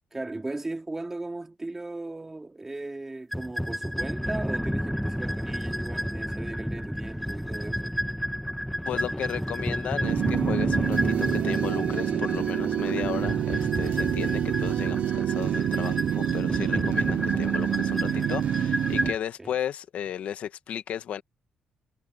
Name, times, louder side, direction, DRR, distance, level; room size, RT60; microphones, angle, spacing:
voice 1, 0.1-8.0 19.4-19.5, right 2 dB, 15° right, 3.0 m, -37 dB
sound 1, 3.3-19.2, equal, ahead, 1.4 m, -31 dB
voice 2, 8.9-21.2, left 9 dB, 70° left, 1.4 m, -35 dB
sound 2, 10.0-19.1, right 11 dB, 70° right, 0.3 m, -27 dB
cardioid pair, 110°, 2 cm